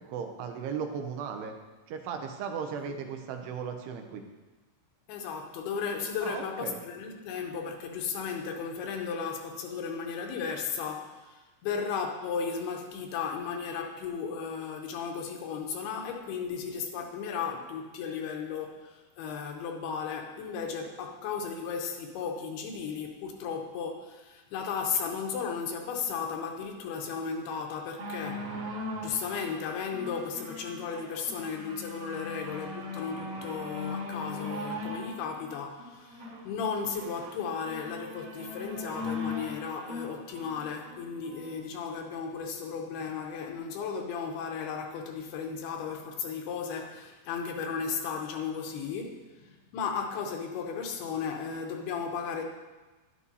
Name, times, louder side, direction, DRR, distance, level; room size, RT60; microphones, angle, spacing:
voice 1, 0.0-1.6 1.9-4.2 6.2-6.8, right 6 dB, 80° right, 5 dB, 2.8 m, -36 dB
voice 2, 5.1-28.5 29.0-52.4, left 6 dB, 80° left, 3 dB, 2.7 m, -35 dB
sound 1, 28.0-41.5 42.3-42.4, left 2 dB, 55° right, 3.2 m, -39 dB
11.0 x 11.0 x 2.7 m, 1.2 s
omnidirectional pair, 4.8 m